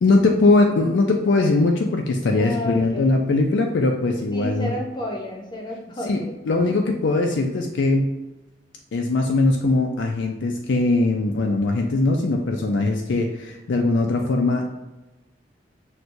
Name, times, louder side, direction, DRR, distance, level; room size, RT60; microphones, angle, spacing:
voice 1, 0.0-4.7 6.1-6.2 6.5-8.1 8.9-14.7, left 2 dB, 80° left, 2 dB, 0.4 m, -20 dB
voice 2, 2.3-3.2 4.3-6.3 6.6-6.8, equal, 25° left, 0 dB, 0.7 m, -31 dB
6.0 x 2.2 x 2.6 m, 1.0 s
head